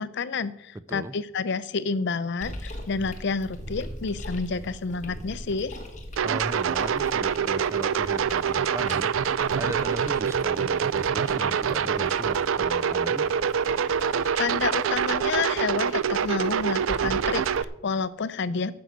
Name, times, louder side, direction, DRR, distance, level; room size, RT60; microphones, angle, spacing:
voice 1, 0.0-5.8 14.4-18.7, left 4 dB, 60° left, 16 dB, 0.5 m, -29 dB
sound 1, 2.4-17.6, equal, 40° left, 1.7 m, -42 dB
voice 2, 6.2-9.1 9.5-13.3, right 1 dB, 15° right, 14 dB, 0.4 m, -37 dB
sound 2, 6.2-17.6, right 7 dB, 75° right, 0.4 m, -25 dB
9.5 x 6.2 x 7.9 m, 0.87 s
head